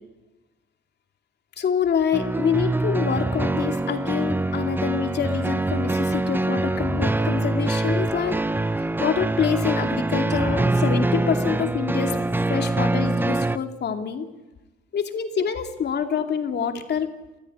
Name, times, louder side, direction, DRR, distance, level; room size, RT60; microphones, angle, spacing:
voice 1, 1.6-8.4 9.0-12.2 12.5-14.3 14.9-17.1, left 7 dB, 60° left, 6 dB, 2.6 m, -26 dB
sound 1, 2.1-13.6, right 2 dB, 10° right, 0.8 m, -24 dB
28.0 x 14.0 x 9.8 m, 1.1 s
cardioid pair, 90°, 20 cm